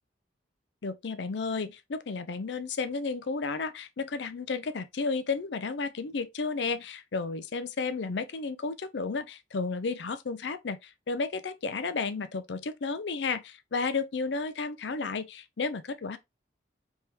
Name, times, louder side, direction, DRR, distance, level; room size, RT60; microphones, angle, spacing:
voice 1, 0.8-16.2, left 4 dB, 70° left, 0.5 m, -32 dB
4.4 x 3.4 x 3.3 m
head